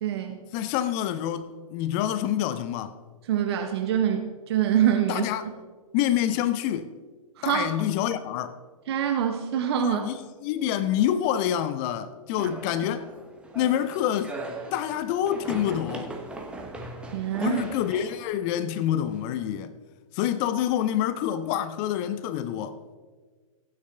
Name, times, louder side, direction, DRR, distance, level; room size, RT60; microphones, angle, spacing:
voice 1, 0.0-0.4 3.3-5.3 7.4-7.7 8.9-10.0 17.1-17.6, right 10 dB, 45° right, 0.9 m, -25 dB
voice 2, 0.5-3.0 5.1-5.5 5.9-6.9 7.4-8.6 9.8-10.2 10.4-13.1 13.5-14.4 14.7-16.1 17.4-19.7 20.1-22.8, left 11 dB, 25° left, 0.5 m, -27 dB
sound 1, 12.4-19.5, right 2 dB, 5° right, 1.1 m, -40 dB
15.5 x 9.1 x 3.4 m
figure-of-eight pair, 115°, 18 cm